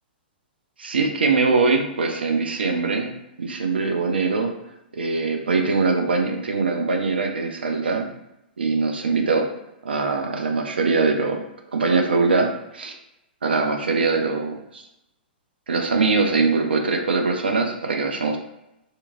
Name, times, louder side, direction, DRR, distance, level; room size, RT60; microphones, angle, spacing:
voice 1, 0.8-3.1 3.4-4.5 4.9-8.1 8.6-9.5 9.8-11.4 11.7-12.9 13.4-14.8 15.7-18.4, right 4 dB, 70° right, 3 dB, 0.5 m, -22 dB
2.8 x 2.5 x 2.5 m, 0.87 s
figure-of-eight pair, 110°, 6 cm